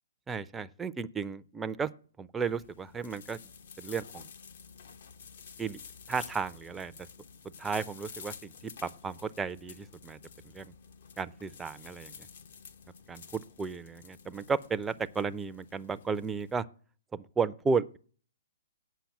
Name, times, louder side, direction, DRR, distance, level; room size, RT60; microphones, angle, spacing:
voice 1, 0.3-1.9 2.2-3.4 3.8-4.2 5.6-5.8 6.1-6.9 7.6-8.5 8.8-10.2 10.5-10.7 11.2-12.1 13.1-16.7 17.1-18.0, right 5 dB, 10° right, 0.5 m, -33 dB
sound 1, 2.4-16.5, left 6 dB, 60° left, 0.9 m, -50 dB
8.4 x 5.8 x 8.1 m
figure-of-eight pair, 120°, 0 cm